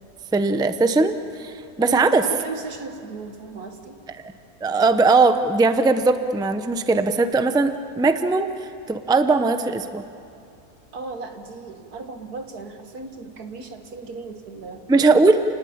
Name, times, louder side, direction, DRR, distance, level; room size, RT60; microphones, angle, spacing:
voice 1, 0.3-2.2 4.6-8.5 8.9-10.1 14.9-15.4, right 3 dB, 5° right, 9 dB, 0.5 m, -19 dB
voice 2, 1.8-4.0 10.9-14.8, right 3 dB, 90° right, 5 dB, 2.2 m, -36 dB
29.5 x 19.5 x 8.7 m, 2.5 s
omnidirectional pair, 1.6 m